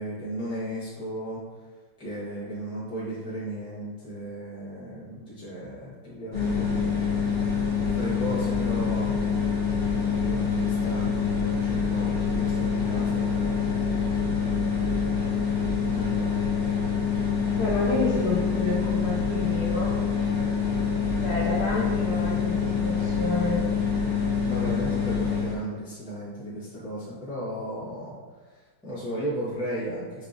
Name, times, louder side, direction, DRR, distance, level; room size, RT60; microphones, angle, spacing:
voice 1, 0.0-1.4 2.0-7.0 7.8-9.7 10.2-13.6 15.9-16.3 24.4-28.1 28.4-30.2, equal, 5° right, -10 dB, 0.5 m, -35 dB
sound 1, 6.3-25.6, left 6 dB, 45° left, 0.8 m, -26 dB
voice 2, 17.5-20.0 21.2-23.6, left 2 dB, 75° left, -5 dB, 0.9 m, -29 dB
3.6 x 2.9 x 2.6 m, 1.4 s
omnidirectional pair, 2.1 m